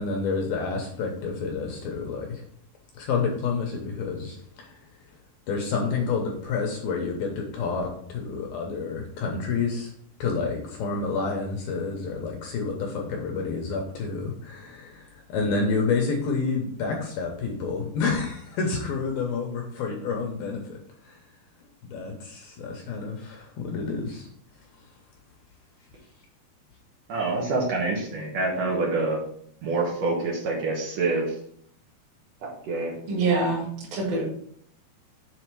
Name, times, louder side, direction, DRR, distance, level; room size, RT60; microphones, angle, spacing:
voice 1, 0.0-2.4 2.9-4.8 5.5-9.9 10.2-20.8 21.0-21.2 21.8-24.3, left 4 dB, 75° left, 1 dB, 2.2 m, -29 dB
voice 2, 27.1-29.2 29.6-31.3 32.7-32.9, right 3 dB, 80° right, -4 dB, 1.4 m, -26 dB
voice 3, 33.1-34.2, right 3 dB, 60° right, -4 dB, 3.2 m, -25 dB
7.7 x 3.8 x 4.6 m, 0.66 s
omnidirectional pair, 5.0 m